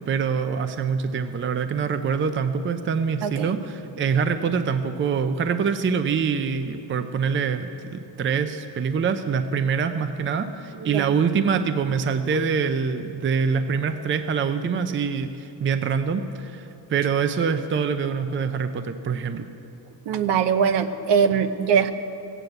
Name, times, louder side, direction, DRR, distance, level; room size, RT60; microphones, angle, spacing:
voice 1, 0.1-19.5, right 6 dB, 25° right, 9 dB, 0.6 m, -25 dB
voice 2, 3.2-3.5 10.8-11.1 20.1-21.9, right 7 dB, 65° right, 9 dB, 0.9 m, -22 dB
15.0 x 9.0 x 7.9 m, 2.8 s
cardioid pair, 135°, 45 cm